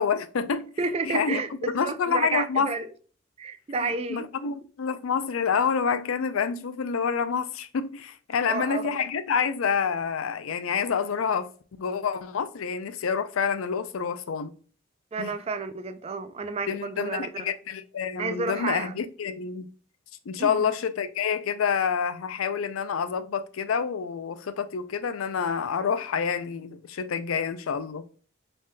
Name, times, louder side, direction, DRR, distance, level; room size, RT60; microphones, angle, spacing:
voice 1, 0.0-0.7 1.0-1.4 1.7-2.7 3.8-11.5 11.8-14.5 15.2-15.3 16.7-19.6 20.3-28.1, left 6 dB, 80° left, 0.4 m, -28 dB
voice 2, 0.8-2.9 3.4-4.3 8.5-8.9 15.1-17.3 18.2-18.9 20.4-20.7, right 4 dB, 30° right, 0.3 m, -31 dB
4.1 x 3.2 x 2.2 m
head